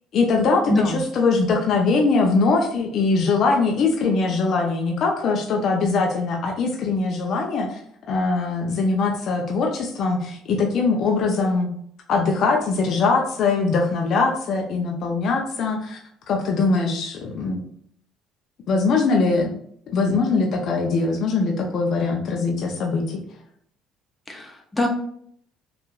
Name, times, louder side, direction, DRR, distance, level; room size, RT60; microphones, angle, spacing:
voice 1, 0.1-7.8 8.1-11.7 12.1-16.0 16.3-17.6 18.7-19.6 19.9-23.2, left 4 dB, 55° left, 2 dB, 0.6 m, -22 dB
voice 2, 0.7-1.0 24.3-24.9, left 2 dB, 15° left, 2 dB, 0.9 m, -23 dB
4.5 x 2.5 x 2.4 m, 0.64 s
hypercardioid pair, 60°, 0 cm